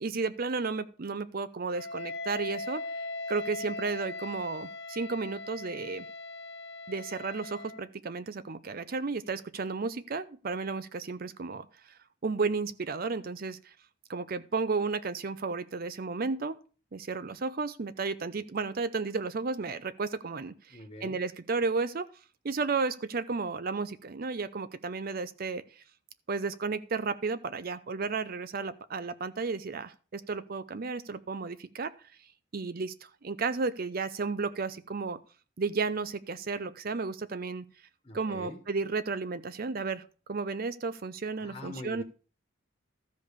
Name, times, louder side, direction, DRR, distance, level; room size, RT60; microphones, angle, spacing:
voice 1, 0.0-2.8 3.3-4.7 5.0-6.0 6.9-7.6 8.0-11.6 12.2-13.6 14.1-16.5 16.9-20.5 21.0-22.0 22.5-25.6 26.3-29.9 30.3-31.9 32.5-32.9 33.2-35.2 35.6-37.6 38.1-40.0 40.3-42.0, right 4 dB, 45° right, 14 dB, 0.5 m, -33 dB
Wind instrument woodwind instrument, 1.7-7.9, left 3 dB, 60° left, 1.0 m, -39 dB
voice 2, 20.7-21.2 38.0-38.6 41.4-42.0, left 1 dB, 25° left, 3 dB, 1.4 m, -43 dB
13.5 x 5.3 x 6.6 m, 0.37 s
head